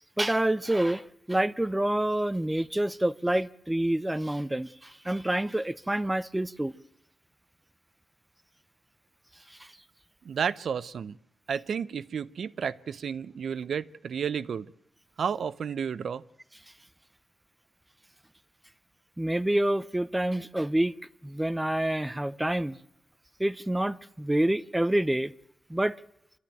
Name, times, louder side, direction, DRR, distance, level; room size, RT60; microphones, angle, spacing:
voice 1, 0.2-6.7 9.5-9.7 19.2-20.9 21.2-22.8 23.4-25.3 25.7-26.0, right 1 dB, 10° right, 0.8 m, -27 dB
voice 2, 10.2-11.2 11.5-14.7 15.2-16.2, right 7 dB, 75° right, 0.7 m, -32 dB
25.5 x 13.0 x 9.2 m
cardioid pair, 80°, 0 cm